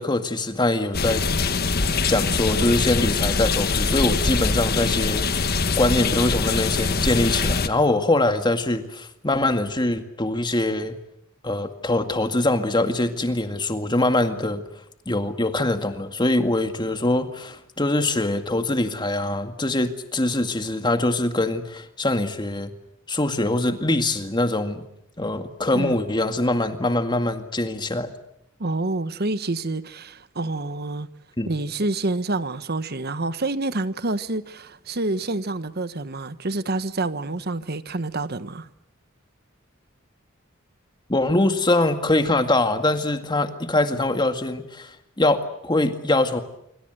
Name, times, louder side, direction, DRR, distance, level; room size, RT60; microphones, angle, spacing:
voice 1, 0.0-1.5 2.1-10.9 11.4-14.6 15.1-22.7 23.1-24.8 25.2-28.1 31.4-31.5 41.1-46.4, left 2 dB, 20° left, 2.0 m, -23 dB
sound 1, 0.9-7.7, left 4 dB, 50° left, 1.5 m, -23 dB
voice 2, 28.6-31.1 31.5-38.7, right 2 dB, 50° right, 1.2 m, -27 dB
26.0 x 25.0 x 8.0 m
head